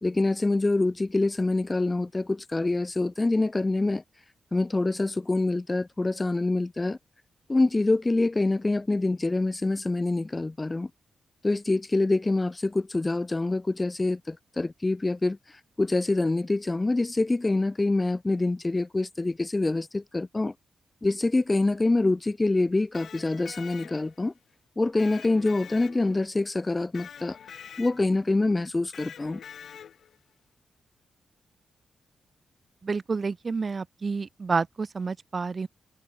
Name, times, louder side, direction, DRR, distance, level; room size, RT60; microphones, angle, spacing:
voice 1, 0.0-4.0 4.5-7.0 7.5-10.9 11.4-15.4 15.8-20.5 21.0-24.3 24.8-27.4 27.8-29.4, left 2 dB, 25° left, 2.1 m, -25 dB
Electric guitar, 22.8-24.3 25.0-26.4 26.9-28.2 28.9-30.2, left 8 dB, 75° left, 3.1 m, -45 dB
voice 2, 32.8-35.7, right 4 dB, 45° right, 2.8 m, -29 dB
supercardioid pair, 55°, 0 cm